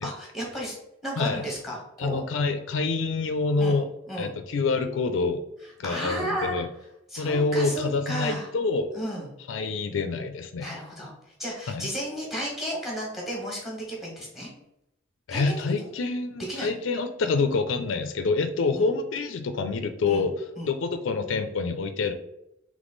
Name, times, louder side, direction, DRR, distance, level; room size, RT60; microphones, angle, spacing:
voice 1, 0.0-0.8 1.0-2.2 3.6-3.8 4.1-4.3 5.8-6.6 7.1-8.5 8.9-9.3 10.6-11.1 11.4-14.5 15.3-15.7 16.5-16.7 18.7-18.9 20.0-20.3 20.6-20.7, equal, ahead, -2 dB, 1.4 m, -33 dB
voice 2, 2.0-3.9 4.2-5.4 5.8-6.7 7.2-8.9 9.5-10.7 11.7-11.9 15.3-20.3 20.6-22.1, left 4 dB, 75° left, 8 dB, 0.4 m, -27 dB
3.6 x 3.1 x 3.8 m, 0.83 s
head